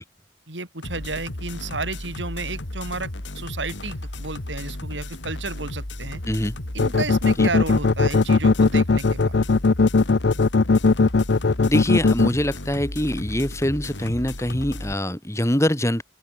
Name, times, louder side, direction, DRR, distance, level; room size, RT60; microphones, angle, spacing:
voice 1, 0.5-3.1 3.4-6.2 6.7-9.4, right 3 dB, 85° right, 5.3 m, -32 dB
sound 1, 0.8-14.9, left 1 dB, 80° left, 2.8 m, -34 dB
sound 2, 6.8-12.3, left 3 dB, 65° left, 0.6 m, -17 dB
voice 2, 11.6-16.0, equal, 15° left, 4.5 m, -24 dB
open air
head